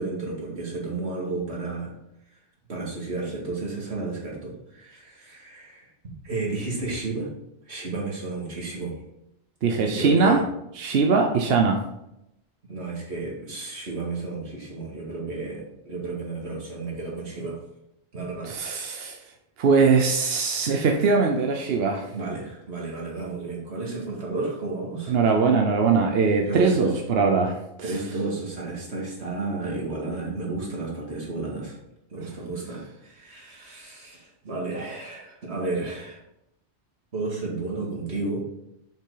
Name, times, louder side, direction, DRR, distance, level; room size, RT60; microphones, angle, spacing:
voice 1, 0.0-1.9 2.7-5.9 6.2-7.3 7.7-8.9 9.8-10.4 12.7-17.6 18.1-18.5 22.1-25.2 26.5-26.9 27.8-31.8 32.1-36.2 37.1-38.4, right 3 dB, 90° right, -3 dB, 2.4 m, -32 dB
voice 2, 9.6-10.4 10.8-11.8 18.4-19.2 19.6-22.0 25.1-27.6 27.9-28.0, right 4 dB, 70° right, 2 dB, 1.0 m, -21 dB
7.2 x 5.9 x 3.8 m, 0.84 s
omnidirectional pair, 1.1 m